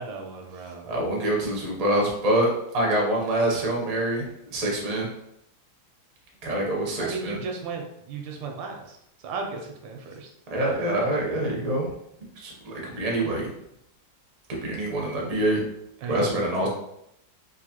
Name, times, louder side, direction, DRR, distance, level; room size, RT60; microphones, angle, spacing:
voice 1, 0.0-0.9 7.0-9.0 9.2-10.3 16.0-16.4, right 4 dB, 85° right, 2 dB, 1.4 m, -35 dB
voice 2, 0.9-4.2 4.5-5.1 6.4-7.4 10.5-11.9 12.4-13.5 14.6-15.6 16.1-16.7, right 1 dB, 50° right, -2 dB, 0.4 m, -25 dB
3.8 x 2.6 x 2.8 m, 0.78 s
omnidirectional pair, 2.0 m